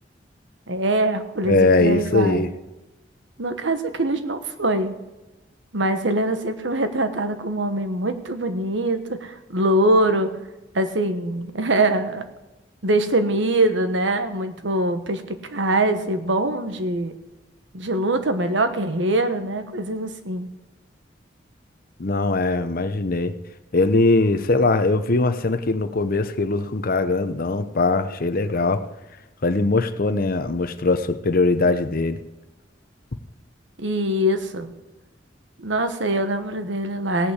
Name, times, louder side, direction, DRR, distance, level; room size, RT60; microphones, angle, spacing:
voice 1, 0.7-2.4 3.4-4.9 5.7-10.3 10.7-12.2 12.8-17.1 17.7-20.5 33.8-34.7 35.6-37.3, right 1 dB, 80° right, 8 dB, 1.3 m, -23 dB
voice 2, 1.4-2.5 22.0-23.4 23.7-28.9 29.4-32.2, left 3 dB, 50° left, 10 dB, 0.8 m, -21 dB
17.0 x 5.9 x 8.1 m, 1.0 s
head